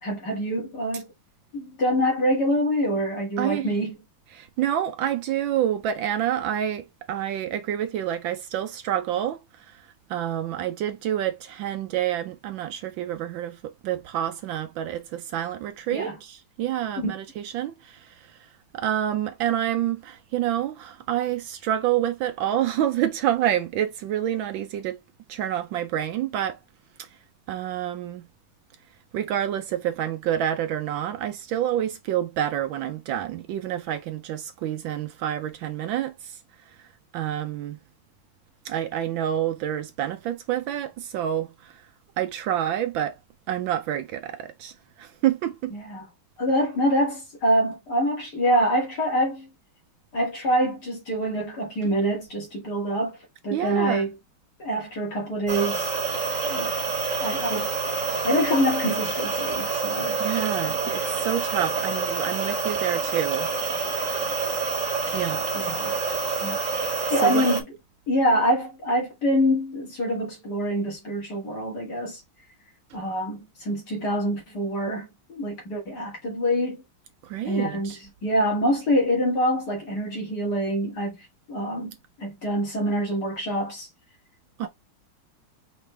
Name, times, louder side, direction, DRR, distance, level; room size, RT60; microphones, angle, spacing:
voice 1, 0.0-1.1 1.5-3.9 15.9-16.2 17.0-17.1 45.7-46.0 46.4-49.5 50.1-53.2 53.4-54.1 54.6-55.9 56.5-56.7 57.2-60.2 65.5-65.9 66.4-66.6 67.1-67.6 68.1-72.2 72.9-76.8 77.4-81.2 81.5-83.9 84.6-84.7, equal, 50° left, 2.6 m, -25 dB
voice 2, 3.4-3.7 4.3-9.8 10.1-18.3 18.7-25.0 25.3-26.6 27.0-27.1 27.5-28.2 29.1-36.4 37.1-37.8 38.6-41.8 42.2-43.2 43.5-45.7 53.5-54.0 60.2-63.5 65.1-65.8 67.2-67.5 77.2-78.0 84.6-84.7, right 11 dB, 75° right, 1.2 m, -28 dB
sound 1, 55.5-67.6, right 4 dB, 45° right, 1.4 m, -27 dB
5.1 x 3.2 x 3.3 m
omnidirectional pair, 2.3 m